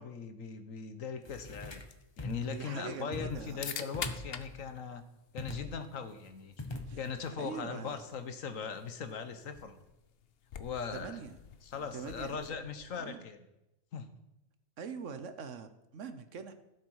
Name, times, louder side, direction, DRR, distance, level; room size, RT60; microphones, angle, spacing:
voice 1, 0.0-1.8 2.2-5.0 5.3-6.6 7.0-9.8 10.6-11.2 11.6-13.4 13.9-14.1, left 6 dB, 80° left, 9 dB, 1.4 m, -40 dB
sound 1, 1.2-13.1, left 8 dB, 55° left, 0.9 m, -49 dB
sound 2, 1.2-1.9 2.2-2.5 3.1-3.6 3.9-4.8 5.4-6.0 6.6-7.3, left 2 dB, 25° left, 0.8 m, -42 dB
voice 2, 2.5-4.1 6.9-7.0 7.4-8.0 10.9-11.3 11.7-12.6 12.9-13.3 14.8-16.5, right 6 dB, 70° right, 10 dB, 1.3 m, -43 dB
16.0 x 7.4 x 4.8 m, 0.91 s
omnidirectional pair, 1.4 m